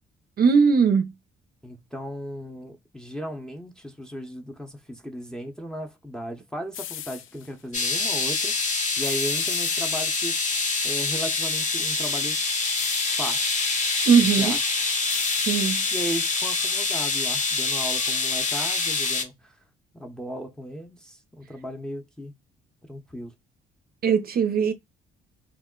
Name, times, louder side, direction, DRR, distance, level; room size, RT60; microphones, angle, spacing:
voice 1, 0.4-1.1 14.1-14.6 15.5-15.8 24.0-24.7, right 6 dB, 50° right, 0.5 m, -19 dB
voice 2, 1.6-8.5 9.0-10.4 10.8-12.4 13.2-13.6 14.4-14.6 15.9-19.6 19.9-22.3 22.9-23.3, equal, 5° left, 0.7 m, -36 dB
sound 1, 6.7-7.5 9.0-10.5 12.8-13.6 15.1-16.1, left 11 dB, 80° left, 0.4 m, -39 dB
sound 2, 7.7-19.2, left 4 dB, 40° left, 0.9 m, -25 dB
2.3 x 2.0 x 3.6 m
cardioid pair, 90°, 20 cm